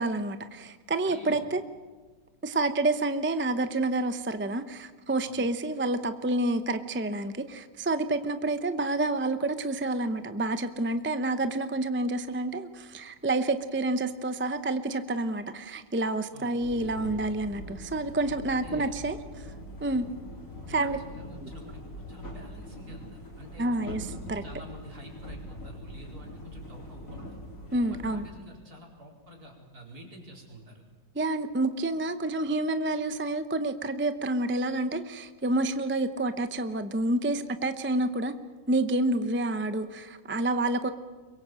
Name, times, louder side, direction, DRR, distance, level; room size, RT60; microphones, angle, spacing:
voice 1, 0.0-1.6 2.4-19.2 19.8-20.0 20.7-21.0 21.4-21.5 23.6-24.4 27.7-28.2 31.1-38.3 38.7-40.9, right 2 dB, 15° right, 9 dB, 0.4 m, -28 dB
voice 2, 1.0-1.5 5.2-5.4 16.3-16.5 18.4-18.9 20.7-24.0 24.4-27.4 27.9-30.8, equal, 55° right, -1 dB, 5.1 m, -48 dB
sound 1, 16.6-28.3, left 1 dB, 45° left, 4.2 m, -43 dB
24.0 x 22.0 x 7.7 m, 1.4 s
omnidirectional pair, 1.9 m